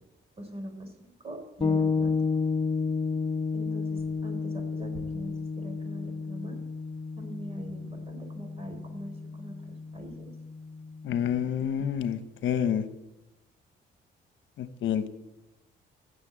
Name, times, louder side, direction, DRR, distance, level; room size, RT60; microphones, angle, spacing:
voice 1, 0.4-2.2 3.5-6.6 7.2-10.3, equal, 30° right, 4 dB, 4.5 m, -42 dB
sound 1, 1.6-11.3, left 4 dB, 25° left, 1.3 m, -32 dB
voice 2, 11.0-12.8 14.6-15.1, left 9 dB, 70° left, 11 dB, 1.1 m, -28 dB
14.5 x 7.0 x 8.9 m, 1.0 s
cardioid pair, 90°, 20 cm